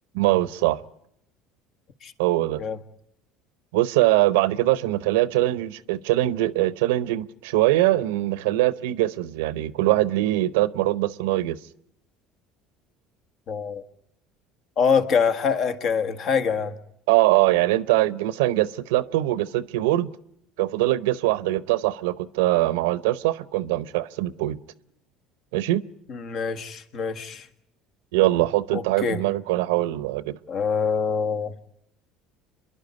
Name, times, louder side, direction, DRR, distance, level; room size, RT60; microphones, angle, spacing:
voice 1, 0.1-0.8 2.2-2.6 3.7-11.6 17.1-20.1 20.6-24.6 25.5-25.8 28.1-30.4, right 16 dB, 85° right, 18 dB, 0.7 m, -22 dB
voice 2, 13.5-13.8 14.8-16.8 26.1-27.5 28.7-29.2 30.5-31.5, left 6 dB, 55° left, 10 dB, 1.5 m, -25 dB
28.0 x 11.5 x 9.5 m, 0.77 s
supercardioid pair, 95°, 0 cm